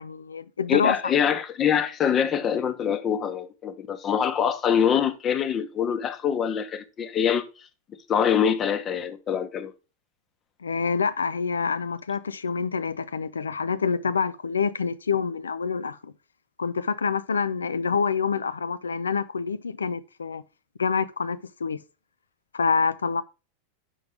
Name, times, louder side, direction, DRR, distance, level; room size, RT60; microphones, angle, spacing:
voice 1, 0.0-1.1 10.6-16.1 16.6-20.4 20.8-21.8 22.5-23.2, left 5 dB, 70° left, 0.4 m, -27 dB
voice 2, 0.7-7.4 8.1-9.7, left 8 dB, 25° left, 0.8 m, -24 dB
5.6 x 5.4 x 3.3 m
figure-of-eight pair, 90°, 0 cm